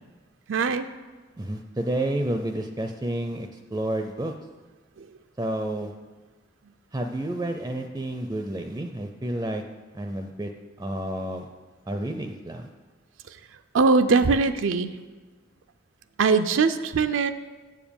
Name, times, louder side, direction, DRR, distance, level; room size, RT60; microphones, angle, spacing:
voice 1, 0.5-0.9 13.7-14.9 16.2-17.3, right 4 dB, 85° right, 8 dB, 0.5 m, -21 dB
voice 2, 1.4-4.3 5.4-5.9 6.9-9.6 9.9-10.5 10.8-11.5 11.9-12.7, right 1 dB, 15° right, 5 dB, 0.4 m, -30 dB
7.6 x 7.3 x 7.0 m, 1.3 s
head